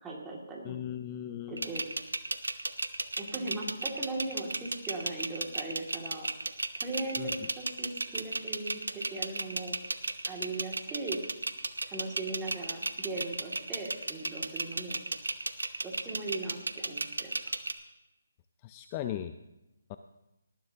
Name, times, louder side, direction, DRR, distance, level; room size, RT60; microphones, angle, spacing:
voice 1, 0.0-0.8 1.5-1.9 3.2-6.3 6.8-9.8 10.2-11.2 11.9-15.0 15.8-17.3 19.0-19.1, right 2 dB, 10° right, -3 dB, 2.3 m, -39 dB
voice 2, 0.6-1.7 7.2-7.3 18.6-19.3 19.9-20.0, left 11 dB, 25° left, 9 dB, 0.5 m, -37 dB
sound 1, 1.6-17.7, right 2 dB, 90° right, 1.1 m, -34 dB
19.0 x 13.0 x 2.9 m, 0.94 s
figure-of-eight pair, 160°, 0 cm